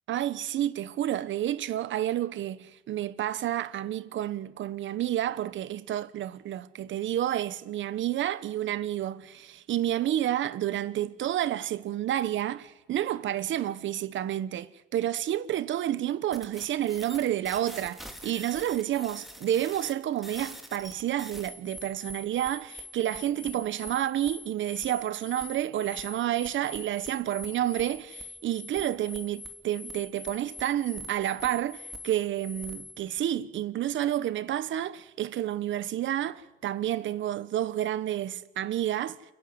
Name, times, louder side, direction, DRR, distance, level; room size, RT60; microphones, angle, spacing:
voice 1, 0.1-39.2, right 12 dB, 75° right, 1.3 m, -30 dB
sound 1, 16.3-33.2, left 1 dB, ahead, 3.0 m, -44 dB
28.5 x 11.5 x 9.8 m
cardioid pair, 90°, 20 cm